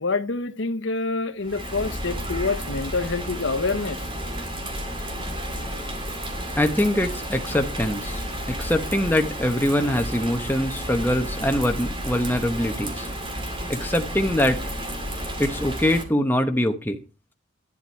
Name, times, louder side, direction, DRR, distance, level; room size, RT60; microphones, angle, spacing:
voice 1, 0.0-4.1, left 3 dB, 65° left, 1.0 m, -27 dB
Bird vocalization bird call bird song / Rain, 1.4-16.0, equal, 25° right, 2.5 m, -32 dB
voice 2, 6.6-8.2 8.6-13.1 13.7-14.6 15.4-17.0, left 1 dB, 10° left, 1.0 m, -23 dB
11.0 x 10.5 x 4.5 m
head